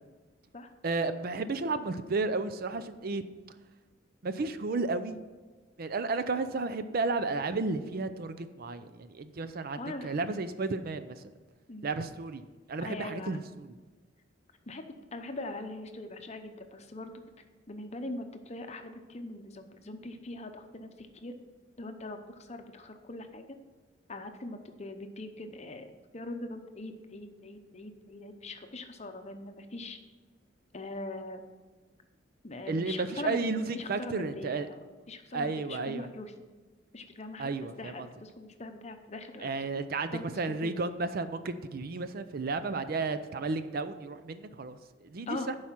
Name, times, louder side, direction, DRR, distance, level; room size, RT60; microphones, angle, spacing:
voice 1, 0.8-3.2 4.2-5.2 5.8-11.2 11.8-12.4 12.7-13.7 32.7-34.7 35.3-36.1 37.4-38.1 39.4-45.6, right 3 dB, 55° right, 11 dB, 0.5 m, -33 dB
voice 2, 9.8-10.1 11.7-11.9 12.8-13.4 14.7-14.8 15.1-17.2 17.7-21.4 21.8-23.4 24.1-25.9 26.1-30.0 30.7-31.4 32.4-36.3 36.9-37.5 37.8-39.5 40.1-40.7 45.3-45.5, left 2 dB, 35° left, 7 dB, 0.8 m, -42 dB
11.5 x 4.8 x 5.8 m, 1.3 s
head